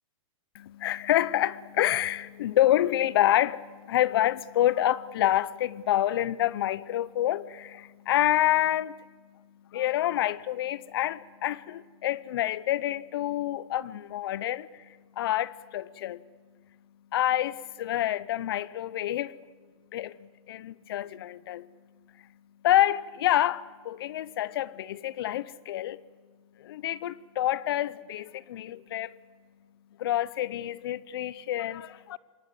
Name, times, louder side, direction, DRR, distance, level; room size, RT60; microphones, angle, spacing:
voice 1, 0.5-9.1 9.7-16.2 17.1-19.4 19.9-21.7 22.1-22.3 22.6-26.0 26.6-29.2 30.0-32.2, left 13 dB, 50° left, 0.7 m, -27 dB
23.5 x 19.0 x 7.7 m
hypercardioid pair, 170°, 17 cm